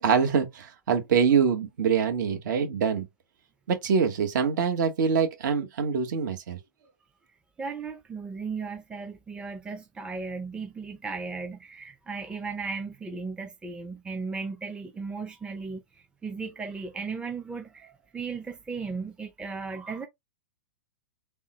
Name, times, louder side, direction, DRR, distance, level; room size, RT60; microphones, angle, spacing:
voice 1, 0.0-3.1 3.7-6.6, right 6 dB, 65° right, 1.1 m, -24 dB
voice 2, 7.6-20.1, right 4 dB, 10° right, 0.5 m, -36 dB
3.6 x 2.1 x 2.9 m
hypercardioid pair, 125°, 11 cm